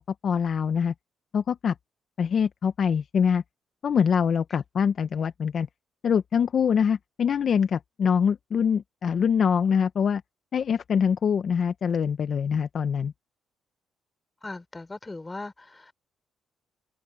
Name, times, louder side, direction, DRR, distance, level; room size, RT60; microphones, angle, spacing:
voice 1, 0.2-0.9 1.3-1.7 2.2-3.4 3.8-5.7 6.0-10.2 10.5-13.1, left 7 dB, 55° left, 0.9 m, -24 dB
voice 2, 14.4-16.1, left 2 dB, 20° left, 4.2 m, -39 dB
cardioid pair, 90°, 0 cm